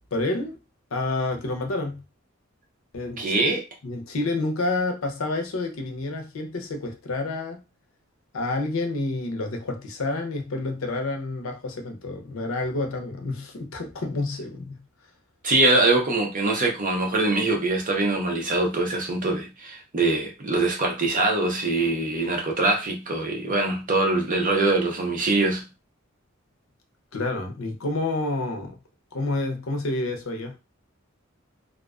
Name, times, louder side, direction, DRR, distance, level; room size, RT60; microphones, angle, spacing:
voice 1, 0.1-0.6 0.9-2.0 2.9-3.4 3.8-7.6 8.3-14.8 27.1-28.8 29.1-30.6, left 2 dB, 75° left, 0.6 m, -29 dB
voice 2, 3.2-3.6 15.4-25.6, right 2 dB, 40° right, 0.7 m, -23 dB
2.4 x 2.2 x 2.3 m
head